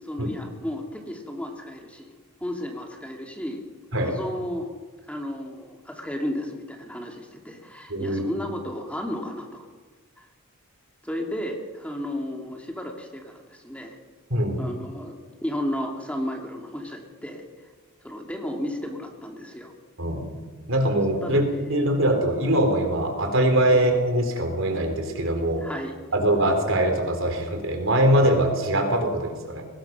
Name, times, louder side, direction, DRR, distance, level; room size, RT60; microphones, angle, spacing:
voice 1, 0.0-2.1 2.4-3.6 4.0-4.7 5.1-9.7 10.2-10.3 11.0-14.0 14.6-15.1 15.4-17.5 18.0-19.7 21.2-21.5 23.7-23.8 25.6-25.9, left 1 dB, 5° left, 1 dB, 2.5 m, -33 dB
voice 2, 7.9-8.2 14.3-14.7 20.0-20.3 20.7-21.4 21.7-25.6 26.1-29.6, right 1 dB, 60° right, 5 dB, 3.8 m, -22 dB
22.5 x 19.5 x 6.1 m, 1.3 s
head